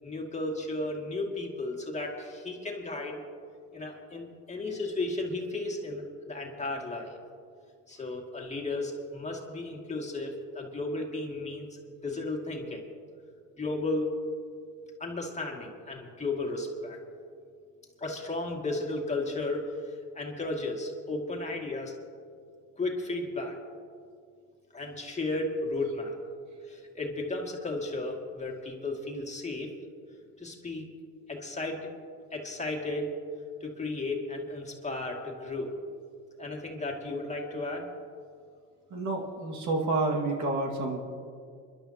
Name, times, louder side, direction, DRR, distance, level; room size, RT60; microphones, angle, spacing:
voice 1, 0.0-3.2 3.7-7.2 7.9-12.9 13.6-14.1 15.0-17.0 18.0-21.9 22.8-23.6 24.7-26.2 26.6-29.7 30.4-30.8 31.3-31.9 32.3-33.1 33.6-35.7 36.4-37.9, left 2 dB, 20° left, 0 dB, 2.3 m, -34 dB
voice 2, 38.9-41.0, right 2 dB, 55° right, 1 dB, 2.1 m, -29 dB
29.0 x 11.5 x 2.9 m, 2.2 s
cardioid pair, 95°, 34 cm